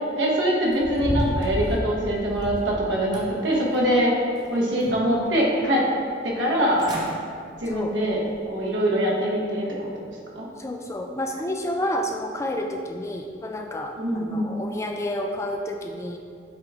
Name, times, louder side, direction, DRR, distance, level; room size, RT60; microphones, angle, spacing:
voice 1, 0.2-4.1 4.5-5.8 6.2-6.8 7.6-8.2 8.5-10.1 10.3-10.5 14.0-14.5, equal, 80° right, -4 dB, 1.2 m, -23 dB
sound 1, 0.7-2.7 3.1-4.0 4.4-5.2 5.6-5.7 6.5-6.6 6.8-7.1 7.6-7.8 8.3-8.4, equal, 20° right, 0.7 m, -31 dB
voice 2, 7.7-8.0 10.6-16.2, left 1 dB, 15° left, 3 dB, 0.3 m, -30 dB
7.8 x 3.5 x 3.5 m, 2.3 s
head